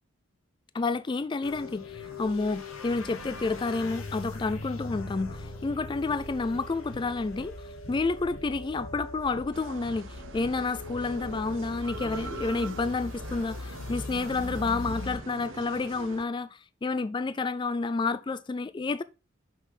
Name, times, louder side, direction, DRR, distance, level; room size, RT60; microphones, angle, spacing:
voice 1, 0.7-7.5 7.9-19.0, left 3 dB, 25° left, 0.3 m, -30 dB
sound 1, 1.4-15.2, left 2 dB, 90° left, 1.1 m, -40 dB
sound 2, 9.5-16.2, right 4 dB, 65° right, 0.7 m, -43 dB
6.0 x 5.4 x 4.0 m
head